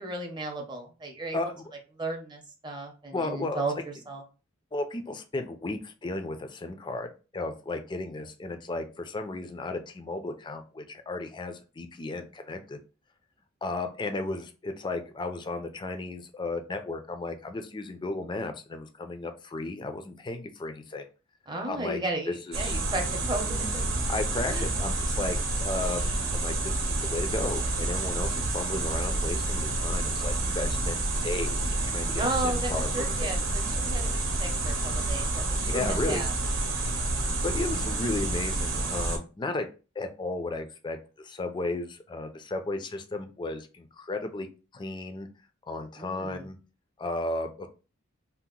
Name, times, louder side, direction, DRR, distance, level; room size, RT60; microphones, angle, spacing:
voice 1, 0.0-1.4 1.9-4.2 21.5-23.8 24.5-24.7 32.1-36.3 46.0-46.5, right 2 dB, 20° right, 2 dB, 0.7 m, -34 dB
voice 2, 1.3-1.6 3.1-3.6 4.7-12.8 13.6-21.1 21.7-22.0 22.3-22.7 24.1-31.0 31.2-33.0 35.7-36.2 37.4-39.7 40.0-44.5 44.7-45.3 45.7-46.6 47.0-47.7, left 2 dB, 25° left, 6 dB, 0.4 m, -34 dB
sound 1, 22.5-39.2, right 2 dB, 80° right, 0.8 m, -29 dB
2.8 x 2.0 x 3.7 m, 0.33 s
head